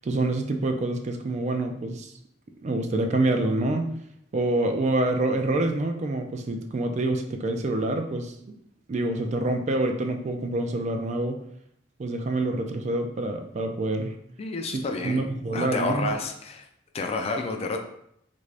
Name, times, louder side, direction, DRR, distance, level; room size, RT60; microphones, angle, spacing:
voice 1, 0.0-2.1 2.6-3.9 4.3-8.3 8.9-11.4 12.0-14.1 14.7-16.1, right 2 dB, 40° right, 5 dB, 0.3 m, -26 dB
voice 2, 14.4-16.7 16.9-17.8, left 3 dB, 35° left, 4 dB, 0.4 m, -30 dB
3.4 x 2.5 x 3.2 m, 0.72 s
head